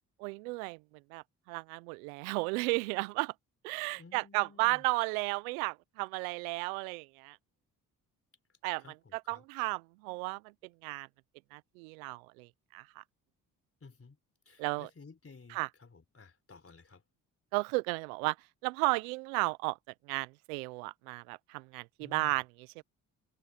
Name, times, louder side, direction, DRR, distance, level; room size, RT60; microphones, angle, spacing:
voice 1, 0.2-0.8 1.1-3.3 3.6-7.4 8.6-10.4 10.8-11.1 11.5-13.0 14.6-14.9 15.5-15.7 17.5-18.4 18.6-19.8 20.0-22.8, right 27 dB, 90° right, 0.7 m, -34 dB
voice 2, 3.9-4.8 8.8-9.4 13.8-14.2 14.5-17.0 22.0-22.3, left 4 dB, 35° left, 4.2 m, -55 dB
hypercardioid pair, 50°, 42 cm